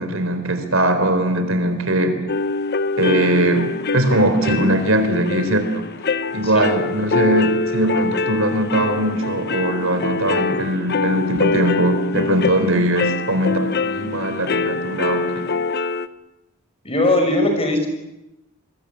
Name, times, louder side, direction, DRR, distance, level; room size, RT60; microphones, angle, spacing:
voice 1, 0.0-2.2 3.0-5.9 6.3-15.5, right 1 dB, 65° right, 9 dB, 4.1 m, -20 dB
sound 1, 2.3-16.1, left 4 dB, 50° left, 0.9 m, -24 dB
voice 2, 6.4-6.7 16.8-17.9, left 1 dB, 25° left, 5 dB, 6.1 m, -19 dB
28.0 x 22.5 x 8.7 m, 0.92 s
head